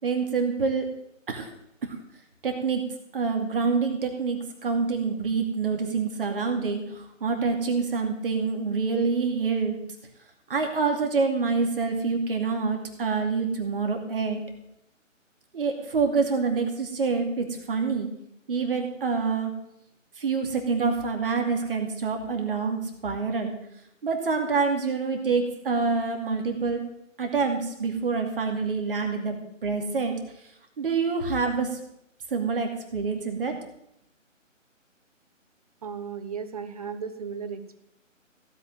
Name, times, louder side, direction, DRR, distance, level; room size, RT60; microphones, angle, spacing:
voice 1, 0.0-0.8 1.3-1.5 1.8-2.0 2.4-2.8 3.1-9.8 10.5-14.4 15.5-18.1 18.5-19.5 20.2-23.5 24.0-26.8 27.2-29.4 29.6-30.2 30.8-31.8 32.3-33.6, right 4 dB, 45° right, 4 dB, 2.5 m, -26 dB
voice 2, 35.8-37.8, right 6 dB, 30° right, 10 dB, 0.9 m, -35 dB
16.0 x 5.7 x 9.1 m, 0.79 s
figure-of-eight pair, 150°, 39 cm